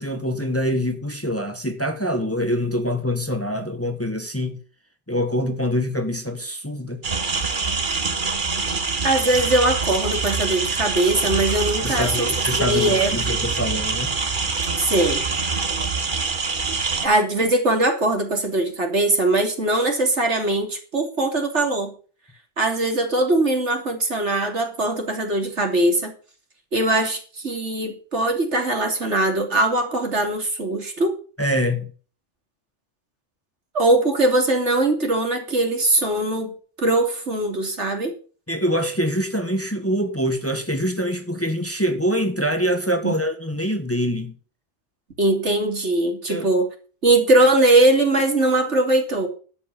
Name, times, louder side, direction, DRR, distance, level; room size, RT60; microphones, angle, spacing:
voice 1, 0.0-4.6 5.1-7.0 11.8-14.1 31.4-31.9 38.5-44.3 46.3-46.5, equal, 10° left, 1.6 m, -24 dB
sound 1, 7.0-17.1, right 4 dB, 45° right, 1.5 m, -25 dB
voice 2, 9.0-12.3 12.7-13.1 14.8-15.2 17.0-21.9 22.6-26.1 26.7-31.1 33.7-38.1 43.0-43.1 45.2-46.7 47.0-49.3, right 2 dB, 70° right, 3.3 m, -21 dB
12.0 x 8.3 x 6.9 m
omnidirectional pair, 1.2 m